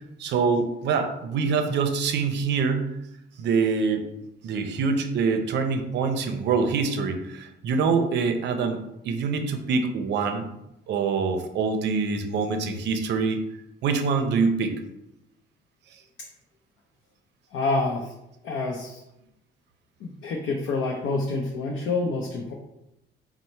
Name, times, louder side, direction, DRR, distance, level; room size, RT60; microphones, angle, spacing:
voice 1, 0.0-2.9 3.4-4.1 4.4-8.8 9.0-10.5 10.9-13.4 13.8-14.8, right 5 dB, 65° right, 6 dB, 0.5 m, -25 dB
voice 2, 17.5-18.1 18.4-19.0 20.0-22.5, left 3 dB, 90° left, 0 dB, 0.6 m, -27 dB
4.1 x 2.0 x 4.3 m, 0.87 s
cardioid pair, 170°, 19 cm